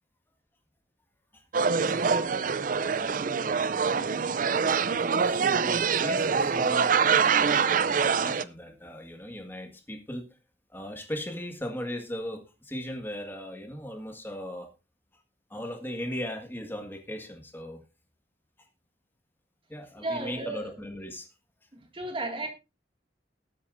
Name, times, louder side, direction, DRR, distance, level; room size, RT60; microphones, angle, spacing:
sound 1, 1.5-8.4, right 6 dB, 45° right, 0.5 m, -25 dB
voice 1, 1.8-2.1 3.0-3.3 5.3-10.2 10.7-14.7 15.5-17.8 19.7-21.3, equal, 10° left, 1.8 m, -38 dB
voice 2, 20.0-20.8 21.7-22.5, right 2 dB, 30° right, 2.2 m, -34 dB
19.5 x 8.5 x 2.6 m
head